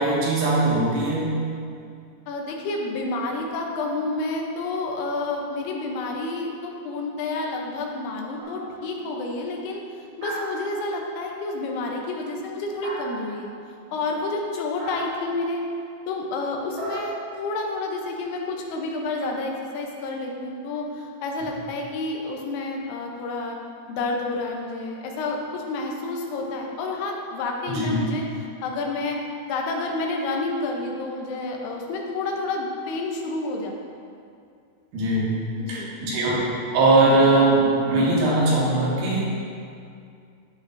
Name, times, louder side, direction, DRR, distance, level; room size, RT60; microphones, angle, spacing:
voice 1, 0.0-1.4 27.7-27.9 34.9-35.3 35.7-39.2, right 2 dB, 80° right, -5 dB, 3.5 m, -20 dB
voice 2, 2.3-9.8 10.2-13.5 13.9-15.6 16.1-23.6 23.9-28.2 28.6-29.2 29.5-33.7 35.6-36.0, left 2 dB, 80° left, 1 dB, 2.8 m, -29 dB
sound 1, 8.4-8.9 10.2-11.1 12.8-13.6 14.8-15.3 16.8-18.0, right 2 dB, 60° right, 3.8 m, -36 dB
13.5 x 5.6 x 2.6 m, 2.4 s
omnidirectional pair, 4.6 m